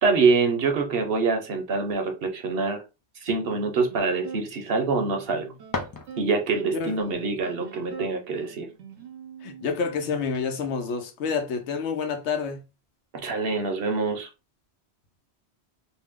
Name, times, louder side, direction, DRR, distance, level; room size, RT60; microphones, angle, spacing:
voice 1, 0.0-2.8 3.2-5.4 6.2-8.7 13.2-14.3, right 4 dB, 60° right, 0.9 m, -25 dB
sound 1, 3.4-10.4, right 5 dB, 85° right, 1.0 m, -44 dB
sound 2, 5.2-6.7, left 3 dB, 35° left, 0.3 m, -35 dB
voice 2, 9.4-12.6, left 5 dB, 85° left, 0.9 m, -28 dB
2.7 x 2.0 x 3.5 m
omnidirectional pair, 1.1 m